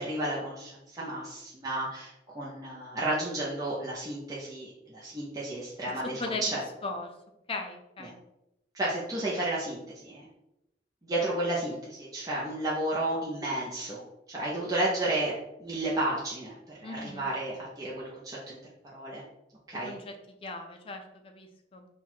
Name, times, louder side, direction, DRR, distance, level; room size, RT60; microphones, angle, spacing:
voice 1, 0.0-6.6 8.7-10.3 11.1-14.0 14.3-15.3 15.6-18.6 18.9-19.2 19.7-19.9, right 1 dB, 20° right, -6 dB, 0.7 m, -32 dB
voice 2, 6.0-7.1 7.5-8.2 16.8-17.3 19.7-21.9, left 2 dB, 30° left, 4 dB, 0.5 m, -38 dB
4.0 x 2.3 x 4.3 m, 0.89 s
head